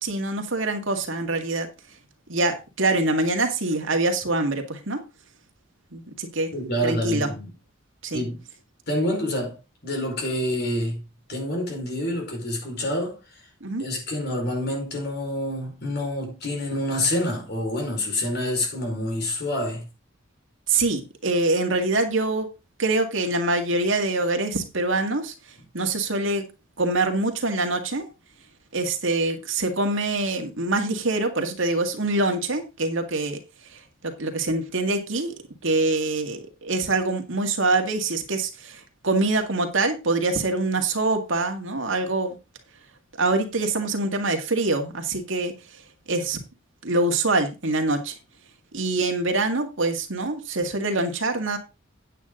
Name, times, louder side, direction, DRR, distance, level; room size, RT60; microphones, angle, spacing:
voice 1, 0.0-1.7 2.3-5.0 5.9-6.5 6.8-7.3 8.0-8.2 13.6-13.9 20.7-22.5 22.8-25.3 25.7-26.4 26.8-28.1 28.7-33.4 34.0-35.3 35.6-42.4 43.2-45.5 46.1-46.4 46.8-48.2 48.7-51.6, right 2 dB, 70° right, 2.1 m, -24 dB
voice 2, 6.5-7.5 8.1-8.4 8.9-13.2 13.8-19.9, left 1 dB, 55° left, 4.9 m, -27 dB
9.3 x 9.1 x 3.8 m
head